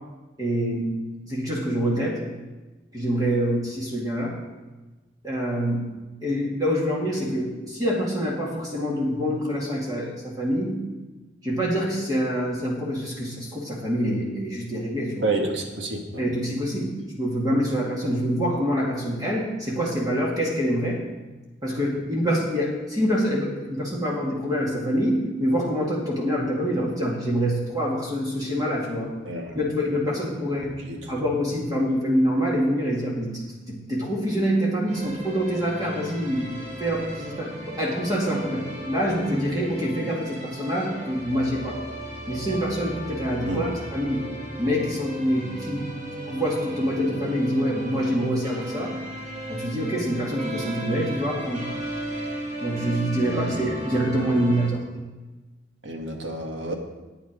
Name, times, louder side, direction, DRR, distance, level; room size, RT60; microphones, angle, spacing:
voice 1, 0.4-1.0 1.3-2.2 2.9-4.3 5.2-5.9 6.2-10.8 11.4-15.3 16.2-16.9 17.2-21.0 21.6-29.1 29.5-30.7 31.1-41.8 42.3-44.2 44.6-45.9 46.3-48.9 49.5-51.7 52.6-54.8, equal, 20° right, -4 dB, 2.1 m, -26 dB
voice 2, 15.2-16.2 29.3-29.5 30.9-31.0 43.5-43.7 53.2-53.7 55.8-56.7, right 2 dB, 80° right, 2 dB, 1.8 m, -29 dB
sound 1, 34.9-54.7, right 1 dB, 45° right, 3.3 m, -36 dB
11.0 x 9.2 x 5.1 m, 1.2 s
head